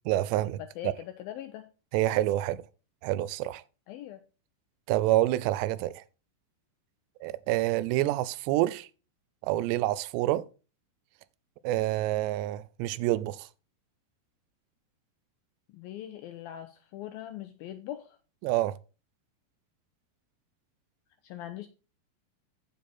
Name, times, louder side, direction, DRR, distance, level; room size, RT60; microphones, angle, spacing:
voice 1, 0.1-0.9 1.9-2.6 3.0-3.6 4.9-6.0 7.2-8.9 9.4-10.5 11.6-13.5 18.4-18.8, right 15 dB, 90° right, 2.8 m, -27 dB
voice 2, 0.8-1.7 3.9-4.2 15.7-18.2 21.2-21.7, left 12 dB, 85° left, 2.1 m, -41 dB
8.5 x 7.3 x 4.3 m
omnidirectional pair, 4.9 m